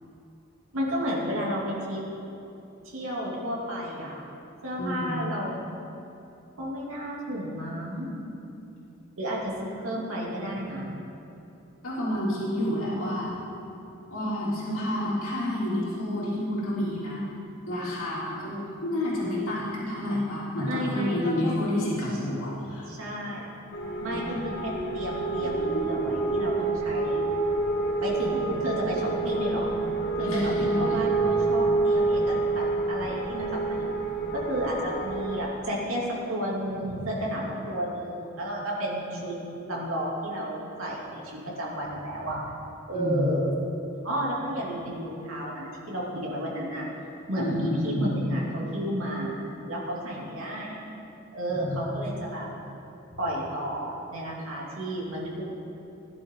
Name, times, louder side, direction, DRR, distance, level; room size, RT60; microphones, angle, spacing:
voice 1, 0.7-2.0 2.8-4.2 4.6-5.6 6.6-8.1 9.2-10.9 12.5-13.2 20.7-21.6 22.9-23.5 24.0-27.2 28.0-29.7 30.2-33.9 34.3-39.3 39.7-42.4 42.9-43.6 44.0-46.9 47.3-49.4 49.7-50.8 51.3-52.5 53.2-55.4, equal, 75° right, -5 dB, 3.0 m, -32 dB
voice 2, 4.8-5.3 11.8-13.4 14.1-17.3 17.7-18.5 18.8-22.9 24.1-24.4 30.2-31.0 42.9-43.4 47.4-48.2 51.5-51.8, left 1 dB, 75° left, -7 dB, 3.5 m, -29 dB
sound 1, 23.7-35.4, right 3 dB, 50° left, 1.5 m, -27 dB
17.5 x 11.5 x 4.0 m, 2.9 s
head